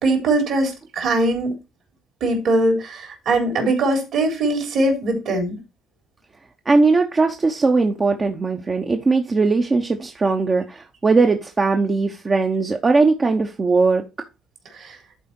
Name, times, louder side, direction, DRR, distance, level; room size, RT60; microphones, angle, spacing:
voice 1, 0.0-1.5 2.2-5.6 14.7-15.0, right 2 dB, 65° right, 3.7 m, -21 dB
voice 2, 6.7-14.0, right 3 dB, 30° right, 0.9 m, -19 dB
11.0 x 4.2 x 4.4 m
supercardioid pair, 75°, 0 cm